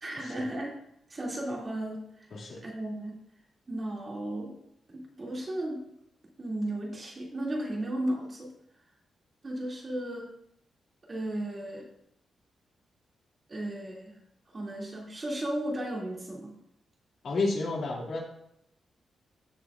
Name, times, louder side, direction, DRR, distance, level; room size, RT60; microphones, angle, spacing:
voice 1, 0.0-0.7 1.1-3.2 3.7-4.5 4.9-5.8 6.4-8.5 9.4-10.3 11.1-11.8 13.5-14.2 14.5-16.5, right 1 dB, 25° right, -2 dB, 2.3 m, -35 dB
voice 2, 17.2-18.2, left 3 dB, 50° left, -2 dB, 2.2 m, -30 dB
14.5 x 6.7 x 2.4 m, 0.75 s
wide cardioid pair, 180°, 0 cm